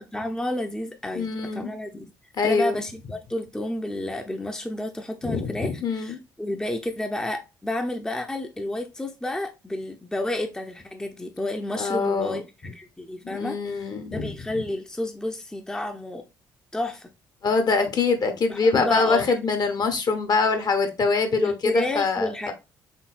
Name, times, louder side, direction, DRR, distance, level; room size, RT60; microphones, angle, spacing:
voice 1, 0.0-2.1 2.4-16.2 16.7-17.1 18.5-19.4 21.4-22.5, left 1 dB, 5° left, 0.6 m, -31 dB
voice 2, 1.1-1.7 2.4-2.8 5.2-6.2 11.8-12.4 13.2-14.3 17.4-22.5, left 4 dB, 40° left, 0.9 m, -24 dB
4.4 x 3.4 x 2.4 m
figure-of-eight pair, 45°, 10 cm